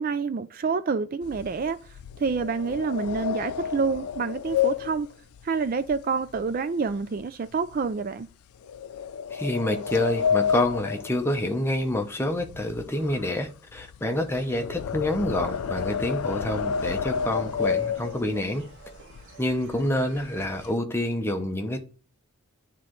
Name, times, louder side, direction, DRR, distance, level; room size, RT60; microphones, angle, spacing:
voice 1, 0.0-5.1 5.4-8.3, right 5 dB, 40° right, 0.3 m, -28 dB
sound 1, 1.2-6.6 6.9-7.2 7.7-7.9 8.7-12.0 12.3-18.5 19.1-19.2 19.5-19.8 20.1-20.8, left 7 dB, 80° left, 0.4 m, -30 dB
voice 2, 9.3-18.7 19.4-21.9, left 1 dB, 10° left, 0.8 m, -27 dB
sound 2, 15.4-20.7, right 3 dB, 60° right, 1.5 m, -48 dB
10.0 x 3.7 x 3.0 m
head